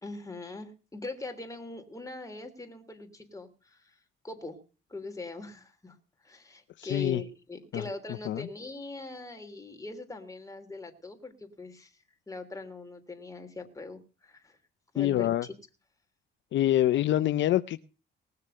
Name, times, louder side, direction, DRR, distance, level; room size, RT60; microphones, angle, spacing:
voice 1, 0.0-4.0 4.2-4.6 4.9-5.9 6.2-14.6 14.9-15.5, left 3 dB, 15° left, 5 dB, 3.3 m, -41 dB
voice 2, 6.8-7.2 7.7-7.8 8.3-8.5 15.0-15.5 16.5-17.8, left 13 dB, 70° left, 13 dB, 0.7 m, -25 dB
19.5 x 6.7 x 6.7 m, 0.36 s
cardioid pair, 90°, 20 cm